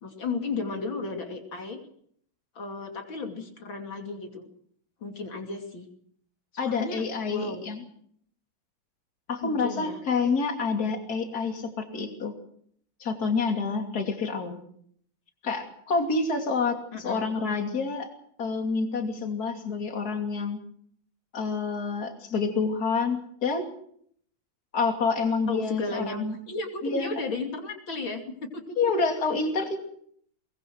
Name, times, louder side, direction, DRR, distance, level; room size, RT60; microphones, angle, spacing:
voice 1, 0.0-1.8 2.6-4.5 5.0-5.9 6.6-7.0 7.3-7.6 9.4-10.0 16.9-17.2 25.5-29.1, left 3 dB, 70° left, 4 dB, 3.4 m, -34 dB
voice 2, 6.6-7.8 9.3-12.3 13.0-14.6 15.4-18.1 18.4-20.6 21.3-23.6 24.7-26.3 26.8-27.2 28.8-29.8, left 4 dB, 45° left, 4 dB, 3.3 m, -28 dB
22.5 x 21.0 x 6.2 m, 0.65 s
omnidirectional pair, 2.2 m